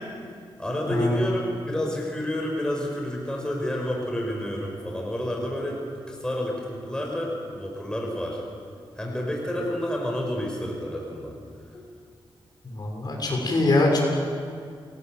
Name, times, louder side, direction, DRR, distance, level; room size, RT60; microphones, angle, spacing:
voice 1, 0.6-8.4 9.0-11.3 11.6-11.7, equal, 10° left, -1 dB, 5.5 m, -29 dB
voice 2, 12.6-14.0, left 2 dB, 45° left, 0 dB, 6.9 m, -23 dB
30.0 x 22.0 x 8.0 m, 2.2 s
wide cardioid pair, 105°, 9 cm